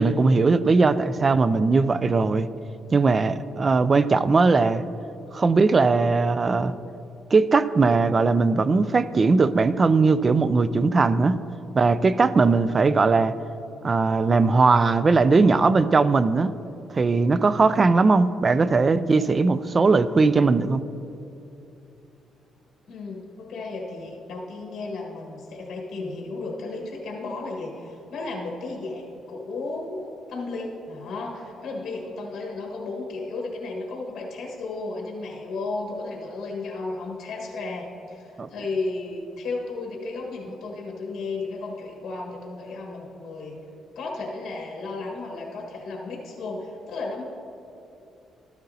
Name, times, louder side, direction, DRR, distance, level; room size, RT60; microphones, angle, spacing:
voice 1, 0.0-2.5 2.9-4.8 5.3-6.7 7.3-11.4 11.7-13.4 13.8-16.5 16.9-20.8 38.4-38.5, right 4 dB, 35° right, 15 dB, 0.3 m, -19 dB
voice 2, 22.9-43.6 43.9-47.2, left 3 dB, 60° left, -1 dB, 1.5 m, -34 dB
13.0 x 9.1 x 2.8 m, 2.8 s
cardioid pair, 90°, 0 cm